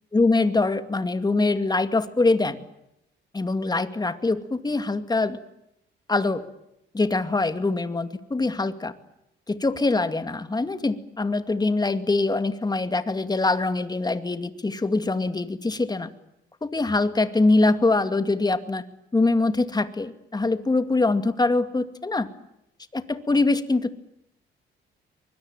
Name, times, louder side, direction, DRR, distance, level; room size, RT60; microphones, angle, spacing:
voice 1, 0.1-2.6 3.3-5.4 6.1-6.4 6.9-8.9 9.5-16.1 16.6-18.8 19.1-22.3 22.9-23.9, left 3 dB, 20° left, 10 dB, 2.4 m, -23 dB
24.5 x 21.5 x 9.0 m, 0.83 s
cardioid pair, 90°, 20 cm